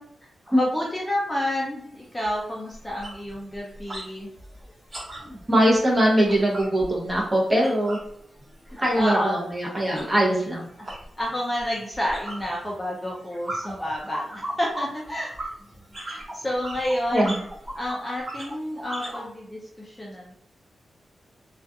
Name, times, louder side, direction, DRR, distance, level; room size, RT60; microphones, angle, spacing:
voice 1, 0.5-4.3 8.7-9.4 11.2-15.5 16.0-17.3 17.7-20.3, left 1 dB, 10° left, -4 dB, 0.4 m, -30 dB
sound 1, 1.8-1.9 2.2-2.4 2.7-4.1 4.4-8.1 8.4-19.3, right 1 dB, 35° right, 1.0 m, -37 dB
voice 2, 5.2-8.0 8.8-10.7 17.1-17.4, equal, 15° right, -2 dB, 0.7 m, -22 dB
2.4 x 2.3 x 2.6 m, 0.71 s
wide cardioid pair, 155°, 0 cm